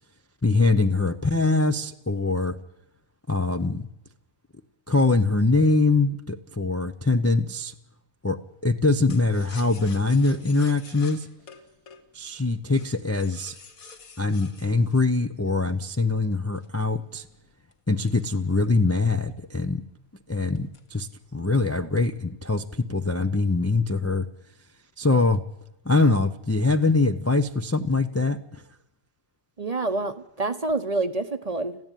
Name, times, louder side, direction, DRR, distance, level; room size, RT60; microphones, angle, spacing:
voice 1, 0.4-2.6 3.3-3.9 4.9-7.7 8.2-11.3 12.1-13.6 14.2-17.3 17.9-19.8 20.3-24.3 25.0-25.4 25.8-28.6, left 3 dB, 20° left, 7 dB, 0.3 m, -23 dB
sound 1, 9.1-16.0 16.6-19.0 19.4-19.5 19.8-20.1 20.6-21.3 21.6-22.1, left 5 dB, 70° left, 1.9 m, -48 dB
voice 2, 29.6-31.8, right 2 dB, 30° right, 11 dB, 0.8 m, -27 dB
21.5 x 15.0 x 9.2 m, 0.84 s
omnidirectional pair, 1.6 m